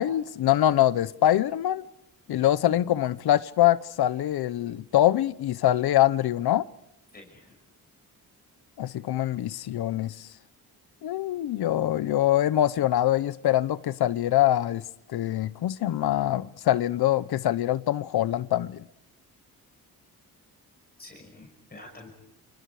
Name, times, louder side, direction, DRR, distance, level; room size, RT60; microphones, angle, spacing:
voice 1, 0.0-1.8 2.3-6.7 8.8-10.3 11.0-14.8 15.1-18.8, left 13 dB, 90° left, 0.9 m, -24 dB
voice 2, 7.1-7.6 21.0-22.1, left 2 dB, 25° left, 5.8 m, -48 dB
29.5 x 29.5 x 4.9 m
wide cardioid pair, 140°, 37 cm